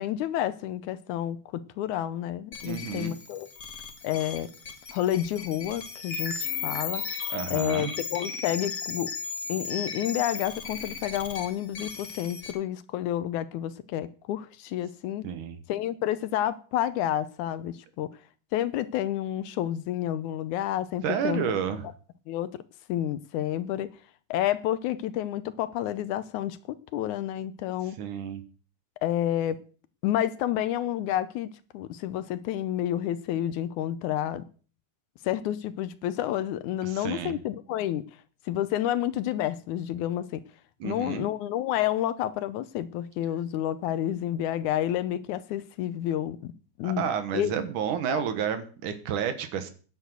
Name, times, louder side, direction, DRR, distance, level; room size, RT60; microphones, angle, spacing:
voice 1, 0.0-3.5 4.0-4.5 4.9-7.0 7.5-9.1 9.5-15.2 15.7-18.1 18.5-21.4 22.3-22.5 22.9-23.9 24.3-28.0 29.0-29.6 30.0-34.4 35.2-38.0 38.5-40.4 40.8-46.5 46.8-47.0 47.3-47.5 48.1-48.2, left 12 dB, 75° left, 2.0 m, -29 dB
sound 1, 2.5-12.5, left 5 dB, 35° left, 1.8 m, -36 dB
voice 2, 2.6-3.1 7.3-7.9 15.2-15.6 21.0-21.9 28.0-28.4 36.8-37.4 40.8-41.3 46.8-49.7, right 8 dB, 75° right, 2.8 m, -30 dB
10.5 x 7.9 x 8.1 m
omnidirectional pair, 3.7 m